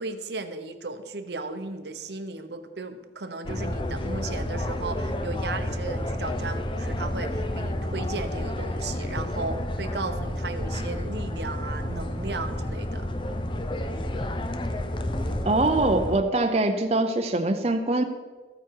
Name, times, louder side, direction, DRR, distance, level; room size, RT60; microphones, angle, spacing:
voice 1, 0.0-13.1, right 3 dB, 70° right, 8 dB, 0.9 m, -35 dB
sound 1, 3.4-16.2, left 1 dB, 30° left, 0.7 m, -30 dB
voice 2, 15.4-18.0, right 2 dB, 35° right, 5 dB, 0.7 m, -23 dB
14.0 x 9.2 x 4.7 m, 1.3 s
head